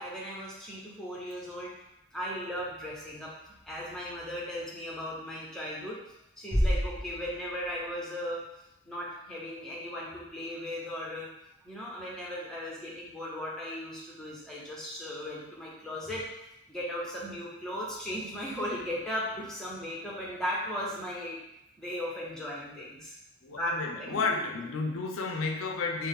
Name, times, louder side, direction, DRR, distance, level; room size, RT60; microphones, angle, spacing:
voice 1, 0.0-1.7 2.1-3.3 3.7-6.0 6.4-8.4 8.8-11.3 11.6-16.2 16.7-21.4 21.8-23.2 23.5-24.4, equal, 5° left, -5 dB, 0.7 m, -37 dB
Bass drum, 6.5-8.2, equal, 25° right, 1.2 m, -30 dB
voice 2, 23.4-26.1, left 4 dB, 70° left, 3 dB, 0.5 m, -32 dB
4.1 x 2.1 x 3.5 m, 0.86 s
head